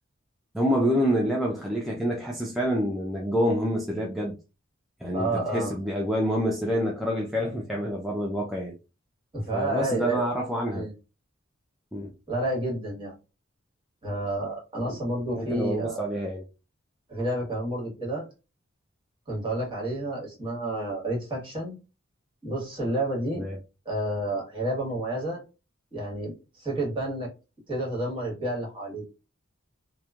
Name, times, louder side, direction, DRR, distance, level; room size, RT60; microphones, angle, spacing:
voice 1, 0.5-4.3 5.0-8.7 9.5-10.9 11.9-12.1 14.8-15.0 15.3-16.5 23.4-23.6, equal, ahead, 0.3 m, -27 dB
voice 2, 5.1-5.8 9.3-10.2 10.7-10.9 12.3-13.1 14.0-16.0 17.1-18.2 19.3-21.7 22.4-23.4 23.8-25.4 25.9-27.3 27.7-29.0, right 1 dB, 25° right, 1.4 m, -30 dB
2.9 x 2.1 x 2.4 m
head